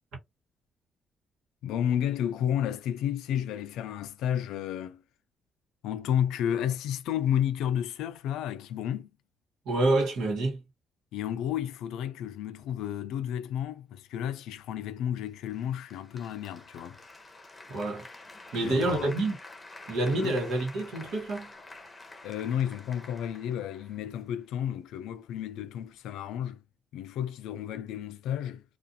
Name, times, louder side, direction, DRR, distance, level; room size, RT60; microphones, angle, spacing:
voice 1, 1.6-5.0 5.8-9.1 11.1-17.0 18.5-19.2 20.2-20.4 22.2-26.6 26.9-28.6, left 10 dB, 90° left, 0.3 m, -32 dB
voice 2, 9.6-10.6 17.7-18.1 18.5-19.4 19.9-21.5, right 2 dB, 85° right, 1.2 m, -27 dB
Applause, 15.5-24.5, left 2 dB, 20° left, 0.7 m, -49 dB
2.4 x 2.4 x 2.6 m
cardioid pair, 90°, 0 cm